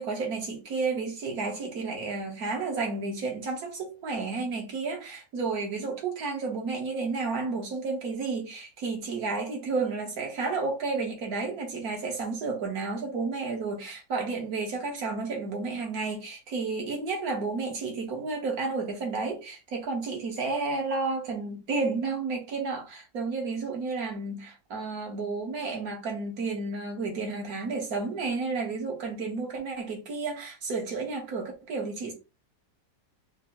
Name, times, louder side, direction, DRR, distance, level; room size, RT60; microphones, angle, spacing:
voice 1, 0.0-32.1, right 4 dB, 60° right, 1.6 m, -31 dB
5.0 x 2.1 x 2.9 m
omnidirectional pair, 1.8 m